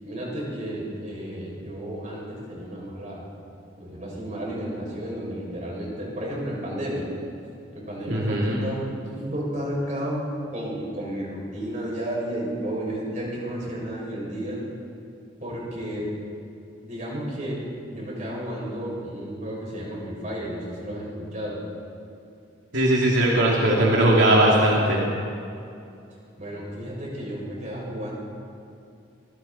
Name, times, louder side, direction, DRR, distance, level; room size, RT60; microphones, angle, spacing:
voice 1, 0.0-3.3 3.8-7.1 7.7-14.6 15.4-16.1 16.8-17.6 17.9-21.6 26.4-28.1, right 1 dB, 40° right, -4 dB, 7.0 m, -32 dB
voice 2, 8.1-8.6 22.7-25.0, right 1 dB, 70° right, -4 dB, 2.8 m, -19 dB
26.5 x 22.5 x 4.4 m, 2.6 s
head